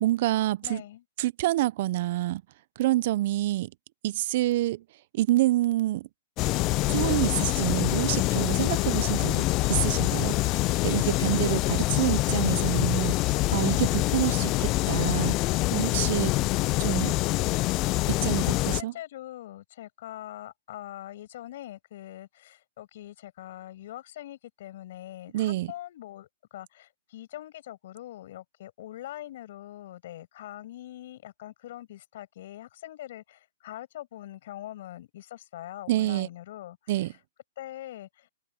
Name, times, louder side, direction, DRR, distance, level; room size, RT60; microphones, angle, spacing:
voice 1, 0.0-0.8 1.2-2.4 2.8-3.7 4.0-4.8 5.1-6.1 6.9-9.4 9.7-10.5 10.8-15.3 15.7-16.3 16.8-17.1 18.1-18.9 25.3-25.7 35.9-36.3 36.9-37.1, right 15 dB, 50° right, 0.6 m, -27 dB
voice 2, 0.6-1.0 18.7-37.2 37.6-38.3, left 13 dB, 55° left, 8.0 m, -43 dB
sound 1, 6.4-18.8, left 20 dB, 30° left, 0.3 m, -25 dB
hypercardioid pair, 145°, 0 cm